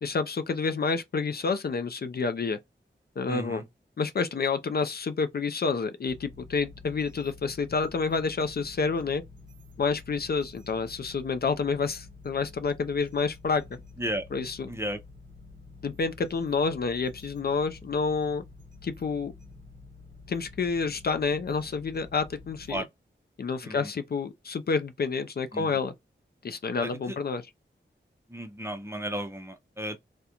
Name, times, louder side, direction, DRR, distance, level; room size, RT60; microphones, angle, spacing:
voice 1, 0.0-2.6 3.2-3.6 4.0-9.2 9.8-13.6 14.3-14.7 15.8-18.4 18.8-19.3 20.3-22.9 23.4-25.9 26.4-27.4, left 4 dB, 55° left, 0.4 m, -29 dB
voice 2, 3.3-3.6 14.0-14.2 14.7-15.0 22.7-22.9 23.6-23.9 25.5-25.7 26.8-27.1 28.3-30.0, equal, 15° right, 0.5 m, -34 dB
sound 1, 6.1-22.8, left 3 dB, 40° right, 0.9 m, -49 dB
2.4 x 2.1 x 2.8 m
cardioid pair, 50°, 20 cm